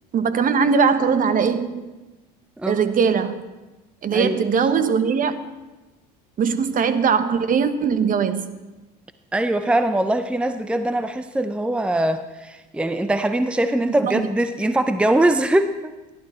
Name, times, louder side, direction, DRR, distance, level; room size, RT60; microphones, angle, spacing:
voice 1, 0.1-1.8 2.7-3.4 4.0-5.4 6.4-8.4 14.0-14.3, right 6 dB, 40° right, 12 dB, 1.1 m, -20 dB
voice 2, 9.3-15.9, right 1 dB, 5° right, 10 dB, 0.6 m, -22 dB
16.0 x 11.0 x 4.4 m, 1.1 s
supercardioid pair, 80°, 20 cm